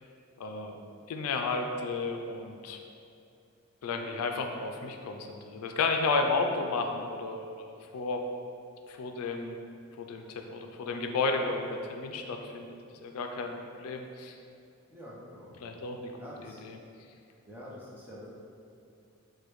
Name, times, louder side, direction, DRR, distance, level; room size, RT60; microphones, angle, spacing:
voice 1, 0.4-0.8 1.1-2.8 3.8-8.2 8.9-9.5 10.0-12.7 13.0-13.5 13.8-14.4 15.6-16.1 16.6-16.8, left 3 dB, 90° left, 4 dB, 0.4 m, -32 dB
voice 2, 14.9-15.5 16.2-16.6 17.5-18.3, equal, 10° right, -7 dB, 0.5 m, -46 dB
4.9 x 2.2 x 3.0 m, 2.5 s
head